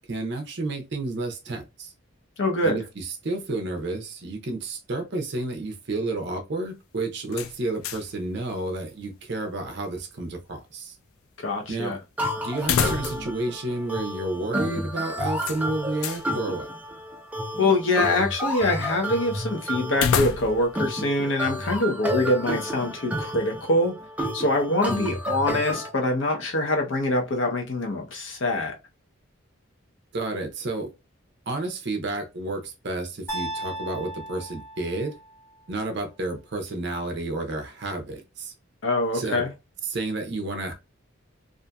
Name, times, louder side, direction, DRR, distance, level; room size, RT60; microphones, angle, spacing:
voice 1, 0.1-1.9 2.6-11.0 11.7-12.0 12.4-16.7 24.9-25.2 30.1-30.9 31.5-35.2 35.7-38.5 39.1-39.5 39.8-40.7, right 2 dB, 55° right, 0.6 m, -31 dB
voice 2, 2.4-2.8 11.4-12.0 17.6-23.9 24.3-28.8 38.8-39.5, left 2 dB, 65° left, 0.7 m, -24 dB
sound 1, 7.3-8.2 8.5-8.6 12.6-13.4 13.7-13.8 15.4-16.3 19.9-20.8, left 7 dB, 85° left, 0.3 m, -27 dB
sound 2, 12.2-25.9, equal, 5° right, 0.3 m, -31 dB
sound 3, 33.3-35.4, right 1 dB, 10° left, 0.8 m, -35 dB
2.6 x 2.5 x 2.2 m
head